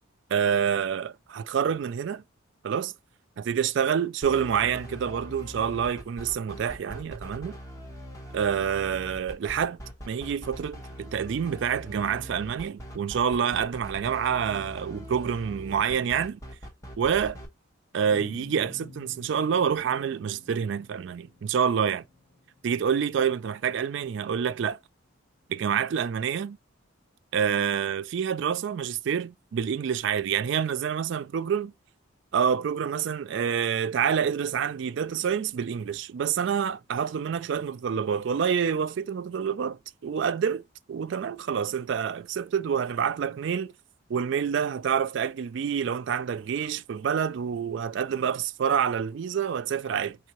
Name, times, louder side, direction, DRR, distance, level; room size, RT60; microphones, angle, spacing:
voice 1, 0.3-2.2 2.6-2.9 3.4-7.6 8.3-9.8 10.1-16.4 17.0-17.4 17.9-22.0 22.6-24.8 25.5-26.6 27.3-31.7 32.3-40.6 40.9-43.7 44.1-50.2, right 7 dB, 60° right, 0.3 m, -27 dB
sound 1, 4.2-17.5, equal, 15° left, 1.0 m, -42 dB
sound 2, 18.1-24.7, left 3 dB, 60° left, 1.7 m, -51 dB
5.2 x 2.7 x 3.0 m
head